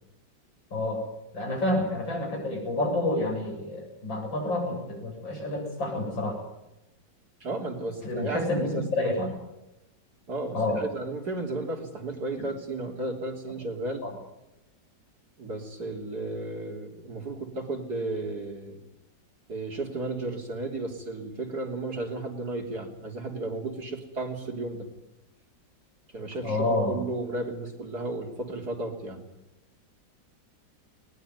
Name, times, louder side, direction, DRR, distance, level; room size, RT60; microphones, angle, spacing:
voice 1, 0.7-1.0 1.3-6.4 8.0-9.3 10.5-10.8 12.4-12.5 14.0-14.1 26.4-27.0, left 1 dB, 80° left, 2 dB, 8.6 m, -28 dB
voice 2, 7.4-9.1 10.3-14.0 15.4-18.8 19.5-24.9 26.1-29.2, right 2 dB, 55° right, 3 dB, 4.0 m, -34 dB
21.0 x 20.5 x 9.4 m, 0.92 s
omnidirectional pair, 2.0 m